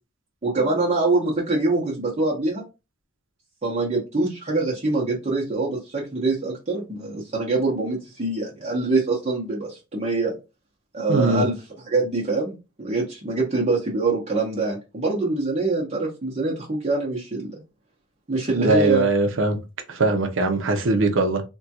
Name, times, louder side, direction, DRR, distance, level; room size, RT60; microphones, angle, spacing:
voice 1, 0.4-2.6 3.6-10.3 10.9-11.5 11.9-17.6 18.3-19.1, right 3 dB, 35° right, 0.8 m, -24 dB
voice 2, 11.1-11.5 18.6-19.6 19.9-21.4, right 2 dB, 65° right, 0.6 m, -21 dB
3.5 x 2.2 x 2.8 m
head